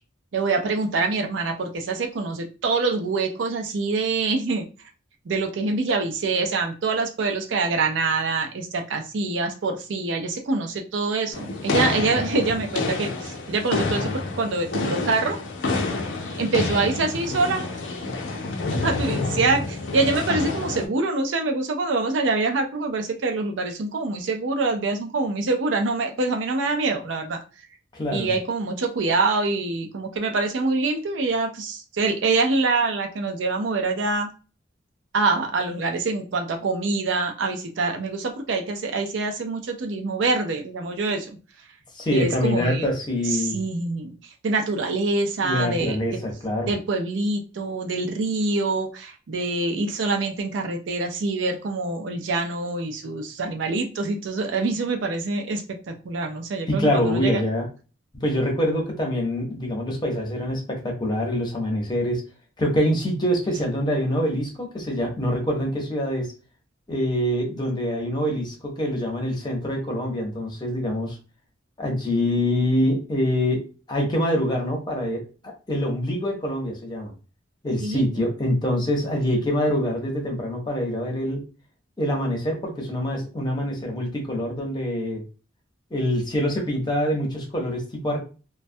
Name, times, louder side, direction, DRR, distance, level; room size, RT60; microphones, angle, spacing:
voice 1, 0.3-4.7 5.3-15.4 16.4-17.7 18.8-27.4 28.1-34.3 35.1-41.4 42.1-42.9 43.2-44.1 44.4-46.0 46.7-57.4 77.8-78.0, right 3 dB, 70° right, 4 dB, 0.4 m, -25 dB
sound 1, 11.3-20.9, left 3 dB, 75° left, 0.5 m, -28 dB
voice 2, 27.9-28.3 41.9-43.6 45.4-46.7 56.7-57.7 58.2-62.2 62.6-66.3 66.9-71.2 71.8-75.2 75.7-77.1 77.6-81.4 82.0-85.2 85.9-88.2, equal, 20° left, 0 dB, 0.7 m, -25 dB
2.2 x 2.1 x 2.6 m, 0.34 s
head